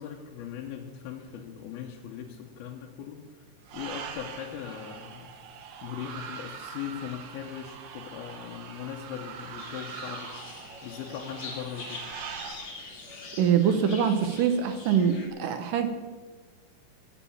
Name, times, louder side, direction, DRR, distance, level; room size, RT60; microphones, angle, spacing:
voice 1, 0.0-3.5 3.7-5.3 5.8-10.4 10.8-12.0, left 9 dB, 75° left, 0 dB, 2.7 m, -39 dB
sound 1, 3.7-12.6, right 7 dB, 90° right, 3.3 m, -42 dB
sound 2, 9.6-15.3, left 3 dB, 35° left, 2.6 m, -44 dB
voice 2, 13.4-15.9, right 7 dB, 75° right, 8 dB, 2.1 m, -24 dB
14.5 x 7.2 x 8.4 m, 1.4 s
omnidirectional pair, 4.6 m